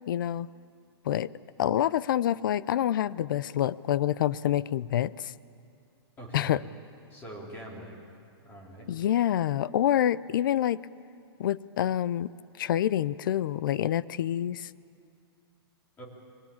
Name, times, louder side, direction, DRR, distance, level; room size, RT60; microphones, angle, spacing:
voice 1, 0.1-0.5 1.1-1.3 1.6-5.3 6.3-6.6 8.9-10.8 11.4-12.3 12.6-14.7, left 11 dB, 50° left, 19 dB, 0.5 m, -27 dB
voice 2, 6.2-6.6 7.1-8.0 8.4-8.9 16.0-16.1, right 1 dB, 15° left, -1 dB, 3.5 m, -43 dB
23.5 x 20.5 x 8.7 m, 2.5 s
hypercardioid pair, 170°, 14 cm